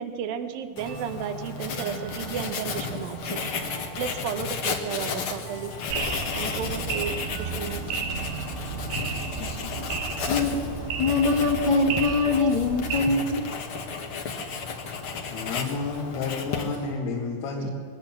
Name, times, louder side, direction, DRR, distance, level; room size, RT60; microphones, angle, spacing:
voice 1, 0.0-3.4 4.0-5.7 6.3-8.1, right 7 dB, 70° right, 9 dB, 2.7 m, -33 dB
Writing, 0.8-17.0, left 5 dB, 60° left, 1.4 m, -33 dB
sound 1, 0.9-10.2, right 7 dB, 45° right, 1.9 m, -43 dB
sound 2, 5.9-13.0, right 5 dB, 85° right, 3.8 m, -33 dB
voice 2, 10.3-10.6 10.9-13.5 17.6-17.7, left 3 dB, 40° left, 1 dB, 2.0 m, -23 dB
voice 3, 15.3-17.7, left 4 dB, 80° left, -2 dB, 4.0 m, -30 dB
22.0 x 17.5 x 7.5 m, 2.1 s
omnidirectional pair, 4.6 m